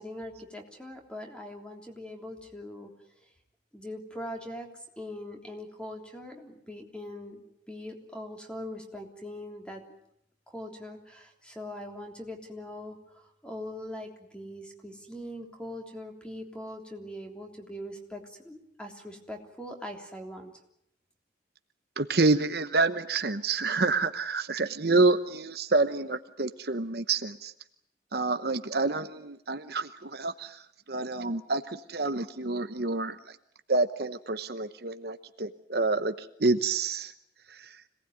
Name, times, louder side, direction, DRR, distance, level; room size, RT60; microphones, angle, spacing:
voice 1, 0.0-2.9 3.7-4.7 5.0-7.4 7.7-9.8 10.5-20.5, left 1 dB, 5° left, 2 dB, 3.3 m, -41 dB
voice 2, 22.0-27.5 28.1-30.6 30.9-33.2 33.7-36.1 36.4-37.1, right 3 dB, 55° right, 9 dB, 1.0 m, -28 dB
26.5 x 19.0 x 9.5 m, 0.75 s
head